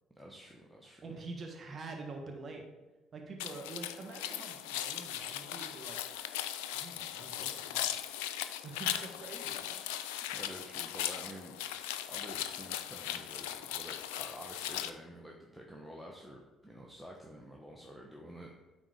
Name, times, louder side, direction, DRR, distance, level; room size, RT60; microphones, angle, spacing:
voice 1, 0.2-1.2 10.3-11.6 12.1-18.5, equal, ahead, -1 dB, 1.1 m, -49 dB
voice 2, 1.0-2.7 3.1-6.0 6.7-8.0 8.6-9.8, right 3 dB, 40° right, 2 dB, 1.4 m, -46 dB
sound 1, 3.4-14.9, left 11 dB, 80° left, 0.4 m, -38 dB
9.0 x 3.9 x 5.0 m, 1.2 s
hypercardioid pair, 55°, 0 cm